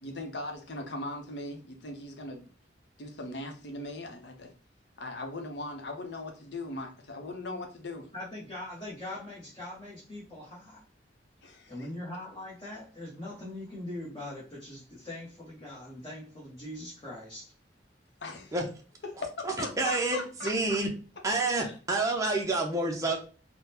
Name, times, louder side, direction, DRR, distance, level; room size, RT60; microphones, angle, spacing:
voice 1, 0.0-2.5 3.0-4.5 5.0-8.1 11.4-11.9 18.2-18.6 19.0-20.8 21.6-21.7, left 2 dB, 65° left, 0.7 m, -39 dB
voice 2, 8.1-10.8 11.7-17.5, left 1 dB, 25° left, 0.9 m, -41 dB
voice 3, 19.6-20.9 21.2-23.2, right 2 dB, 15° right, 0.5 m, -28 dB
3.6 x 2.1 x 2.8 m
head